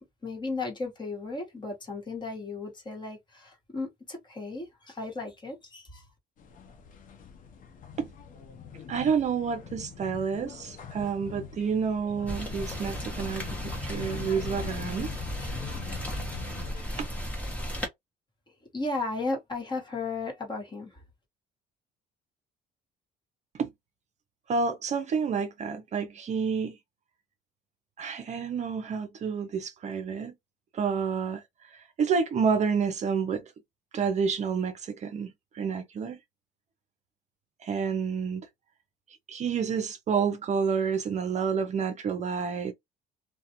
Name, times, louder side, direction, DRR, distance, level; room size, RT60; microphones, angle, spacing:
voice 1, 0.2-6.1 18.7-21.0, left 3 dB, 25° left, 1.2 m, -35 dB
sound 1, 6.4-16.8, left 7 dB, 50° left, 0.6 m, -42 dB
voice 2, 8.9-15.1 17.0-17.1 23.5-23.7 24.5-26.8 28.0-30.3 30.7-31.4 31.7-33.4 33.9-36.2 37.6-38.4 39.3-42.7, right 6 dB, 45° right, 0.5 m, -29 dB
Rain, 12.3-17.9, equal, 10° left, 1.0 m, -35 dB
2.4 x 2.2 x 2.8 m
cardioid pair, 110°, 17 cm